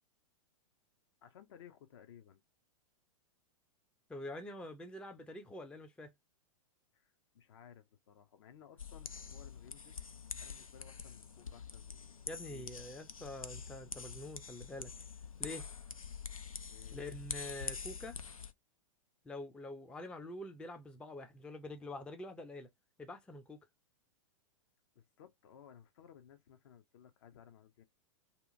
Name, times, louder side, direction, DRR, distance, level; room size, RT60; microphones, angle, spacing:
voice 1, 1.2-2.4 6.9-10.0 10.4-12.7 12.9-13.1 16.7-17.0 24.9-27.8, left 9 dB, 50° left, 0.6 m, -59 dB
voice 2, 4.1-6.1 12.3-14.9 15.4-15.7 16.9-18.2 19.2-22.7 23.0-23.6, left 1 dB, 5° left, 0.4 m, -46 dB
sound 1, 8.8-18.5, left 6 dB, 85° left, 0.4 m, -46 dB
2.8 x 2.4 x 2.5 m
figure-of-eight pair, 100°, 17 cm